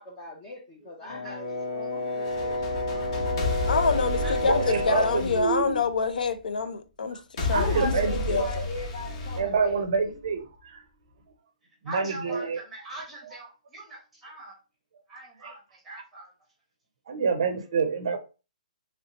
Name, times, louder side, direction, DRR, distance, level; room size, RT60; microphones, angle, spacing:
voice 1, 0.0-3.4 3.9-4.4 7.4-10.2 17.7-17.8, left 3 dB, 15° left, 0.4 m, -39 dB
voice 2, 0.8-1.4 4.2-4.3 11.8-14.5 15.1-16.3, right 2 dB, 5° right, 0.9 m, -42 dB
Brass instrument, 1.1-5.3, left 1 dB, 60° left, 0.8 m, -31 dB
sound 1, 2.1-6.2 7.4-10.2, left 2 dB, 35° left, 0.9 m, -32 dB
voice 3, 3.7-8.6, left 4 dB, 85° left, 0.5 m, -27 dB
voice 4, 4.4-5.8 7.5-8.7 9.2-10.8 11.8-12.6 13.2-13.3 15.4-15.5 17.1-18.2, right 5 dB, 40° right, 0.5 m, -28 dB
3.1 x 2.7 x 2.8 m
hypercardioid pair, 175°, 4 cm